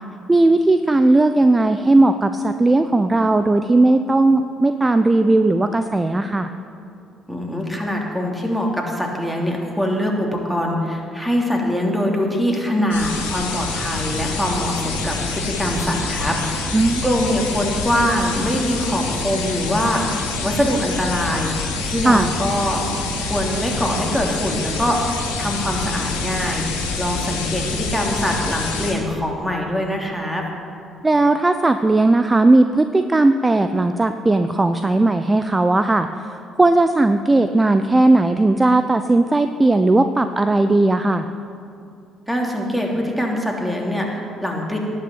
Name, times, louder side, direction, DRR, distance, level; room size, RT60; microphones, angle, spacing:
voice 1, 0.3-6.5 16.7-17.0 22.0-22.3 31.0-41.3, right 2 dB, 20° right, 9 dB, 0.7 m, -17 dB
voice 2, 7.3-30.4 42.3-44.8, equal, ahead, -1 dB, 3.0 m, -23 dB
sound 1, 12.9-28.9, left 3 dB, 75° left, 2.3 m, -26 dB
18.5 x 6.5 x 8.0 m, 2.6 s
figure-of-eight pair, 45°, 0 cm